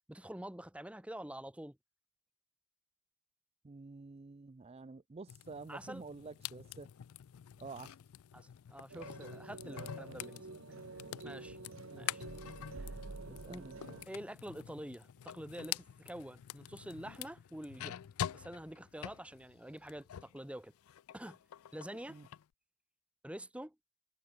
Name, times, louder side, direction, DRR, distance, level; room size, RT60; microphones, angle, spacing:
voice 1, 0.1-1.8 5.7-6.0 8.3-10.5 11.2-11.6 12.0-12.2 12.8-12.9 13.5-13.7 14.1-18.0 18.3-20.7 21.1-21.4 21.7-22.2 23.2-23.8, right 1 dB, 5° right, 1.0 m, -47 dB
voice 2, 3.6-6.9 7.6-8.0 11.9-12.1 13.3-14.0 22.1-22.3, right 4 dB, 30° right, 0.4 m, -49 dB
sound 1, 5.3-20.4 20.8-22.4, left 10 dB, 85° left, 0.4 m, -46 dB
sound 2, 8.9-14.0, right 3 dB, 65° right, 1.0 m, -48 dB
sound 3, 13.0-20.2, left 3 dB, 50° left, 7.6 m, -78 dB
head